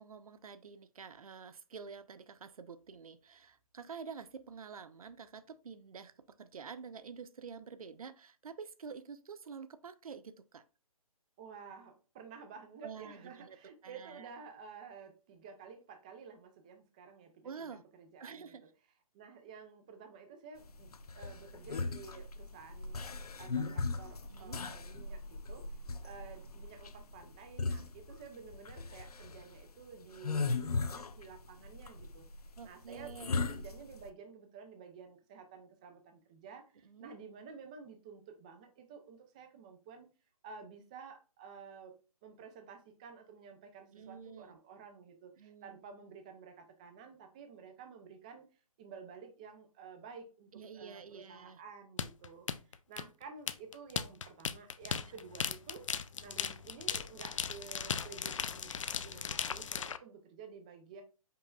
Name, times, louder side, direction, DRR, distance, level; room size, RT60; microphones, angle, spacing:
voice 1, 0.0-10.6 12.8-13.6 13.8-14.3 17.4-17.8 18.2-18.6 24.3-24.6 32.6-33.3 36.8-37.1 43.9-44.6 45.4-45.9 50.5-51.6, right 6 dB, 70° right, 0.7 m, -48 dB
voice 2, 11.4-18.5 19.1-20.9 21.2-23.0 23.4-32.3 32.6-40.1 40.4-41.9 42.2-48.5 48.8-55.9 56.2-61.0, right 5 dB, 10° right, 0.5 m, -52 dB
sound 1, 20.7-34.1, left 4 dB, 90° left, 0.7 m, -38 dB
sound 2, 52.0-60.0, left 7 dB, 55° left, 0.5 m, -37 dB
5.6 x 4.1 x 2.3 m
hypercardioid pair, 165°, 19 cm